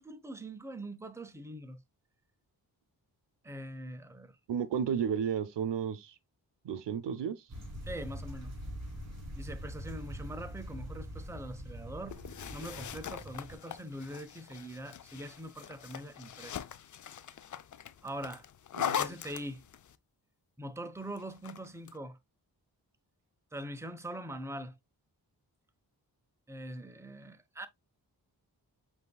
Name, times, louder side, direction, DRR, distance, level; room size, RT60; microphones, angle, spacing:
voice 1, 0.0-1.8 3.4-4.4 7.8-8.5 9.4-12.2 12.5-16.6 18.0-18.4 18.9-19.6 20.6-22.2 23.5-24.7 26.5-27.7, right 1 dB, 5° right, 0.7 m, -43 dB
voice 2, 4.5-6.1 6.6-7.4 18.8-19.0, right 7 dB, 85° right, 0.7 m, -32 dB
sound 1, 7.5-13.6, equal, 40° right, 2.9 m, -43 dB
sound 2, 12.1-20.0 21.2-22.0, left 9 dB, 45° left, 0.5 m, -41 dB
7.9 x 2.7 x 2.2 m
cardioid pair, 60°, 41 cm